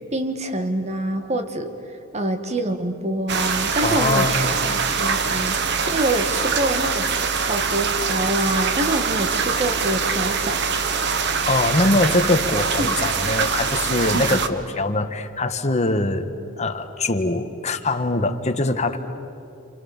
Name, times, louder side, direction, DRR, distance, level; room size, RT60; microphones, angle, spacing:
voice 1, 0.1-1.7 2.1-7.1 7.4-10.7 12.8-12.9 14.1-14.4, right 1 dB, 35° right, 7 dB, 1.8 m, -26 dB
sound 1, 3.3-14.5, right 5 dB, 60° right, 1.3 m, -23 dB
voice 2, 3.8-4.6 11.4-16.3 16.6-19.0, left 2 dB, 35° left, 6 dB, 1.5 m, -22 dB
28.5 x 28.0 x 7.3 m, 2.8 s
head